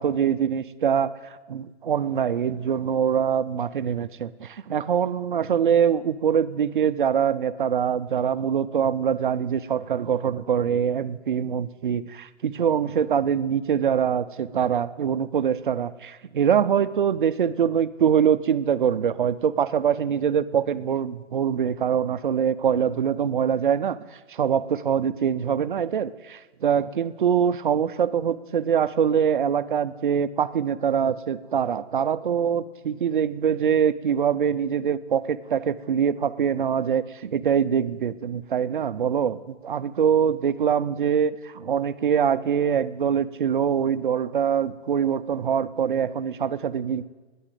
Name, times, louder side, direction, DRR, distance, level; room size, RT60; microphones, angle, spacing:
voice 1, 0.0-47.0, right 8 dB, 45° right, 14 dB, 0.4 m, -24 dB
10.0 x 9.6 x 9.1 m, 1.3 s
hypercardioid pair, 165°, 36 cm